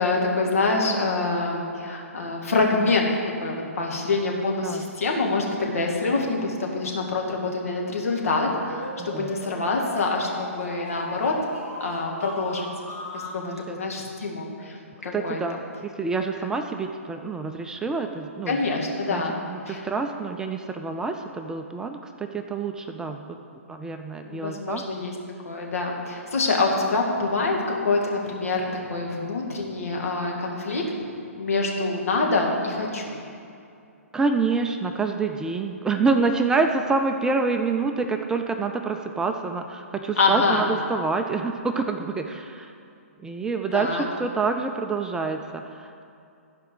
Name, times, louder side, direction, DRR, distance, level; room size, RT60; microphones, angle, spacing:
voice 1, 0.0-3.1 3.4-11.3 11.8-12.7 13.1-13.4 13.7-15.4 18.5-19.8 24.2-25.1 25.4-30.8 31.3-33.2 40.2-40.7 43.7-44.1, left 3 dB, 70° left, 0 dB, 2.0 m, -25 dB
sound 1, 8.4-13.4, left 1 dB, 30° left, 2.6 m, -37 dB
voice 2, 9.0-9.3 13.4-13.8 15.1-15.6 15.8-18.6 19.1-19.2 19.5-23.4 23.7-24.8 34.1-42.7 43.2-46.0, right 4 dB, 10° right, 5 dB, 0.4 m, -27 dB
13.5 x 5.1 x 6.2 m, 2.5 s
hypercardioid pair, 130°, 8 cm